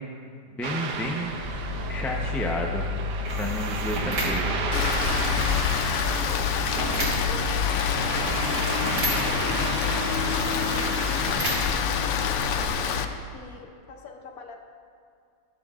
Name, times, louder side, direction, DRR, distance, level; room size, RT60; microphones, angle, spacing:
voice 1, 0.6-1.3 1.9-2.8 3.4-4.6, left 1 dB, 5° left, 0 dB, 0.3 m, -31 dB
Ocean, 0.6-11.5, right 5 dB, 80° right, 1.4 m, -34 dB
sound 1, 1.2-13.2, left 2 dB, 55° right, 2.6 m, -31 dB
Rain, 4.7-13.0, left 7 dB, 85° left, 0.6 m, -27 dB
voice 2, 6.2-11.5 11.8-14.6, left 4 dB, 60° left, 3 dB, 1.1 m, -42 dB
14.0 x 11.0 x 2.5 m, 2.3 s
omnidirectional pair, 1.9 m